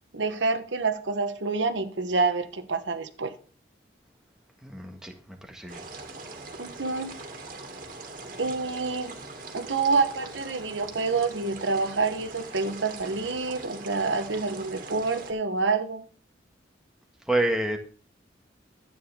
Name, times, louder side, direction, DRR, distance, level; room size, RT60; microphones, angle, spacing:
voice 1, 0.1-3.3 6.6-7.1 8.4-9.2 9.5-16.0, right 4 dB, 85° right, 1.1 m, -27 dB
voice 2, 4.6-5.9 17.2-17.8, right 1 dB, 5° right, 1.5 m, -28 dB
sound 1, 5.7-15.3, right 3 dB, 50° right, 2.2 m, -42 dB
12.5 x 9.1 x 3.6 m
head